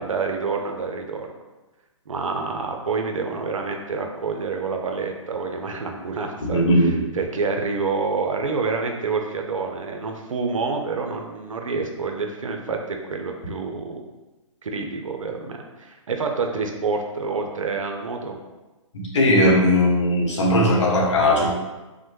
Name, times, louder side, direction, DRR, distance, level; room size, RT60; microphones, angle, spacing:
voice 1, 0.0-1.3 2.1-14.0 14.6-18.4, right 4 dB, 80° right, 3 dB, 0.5 m, -28 dB
voice 2, 6.4-7.0 19.1-21.5, left 1 dB, 65° left, -2 dB, 0.9 m, -18 dB
3.0 x 2.1 x 3.1 m, 1.1 s
figure-of-eight pair, 135°, 17 cm